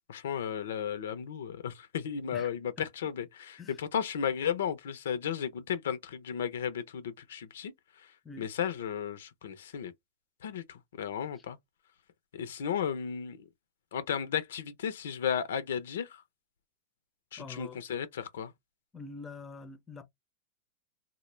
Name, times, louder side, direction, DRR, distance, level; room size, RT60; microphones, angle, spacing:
voice 1, 0.1-7.7 8.4-9.9 10.4-11.6 12.3-13.4 13.9-16.2 17.3-18.5, left 8 dB, 80° left, 0.5 m, -34 dB
voice 2, 2.3-2.9 3.6-3.8 8.2-8.5 11.4-11.5 17.4-17.8 18.9-20.1, left 4 dB, 15° left, 0.5 m, -45 dB
2.1 x 2.0 x 3.0 m
hypercardioid pair, 120°, 0 cm